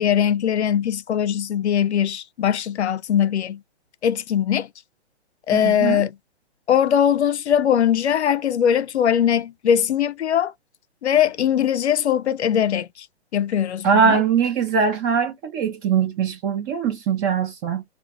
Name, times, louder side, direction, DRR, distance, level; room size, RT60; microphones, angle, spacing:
voice 1, 0.0-3.6 4.0-4.7 5.5-6.1 6.7-10.5 11.0-13.1 13.3-14.2, left 9 dB, 90° left, 0.5 m, -21 dB
voice 2, 5.5-6.0 13.8-17.8, right 6 dB, 15° right, 0.4 m, -21 dB
2.4 x 2.3 x 2.8 m
hypercardioid pair, 130°, 32 cm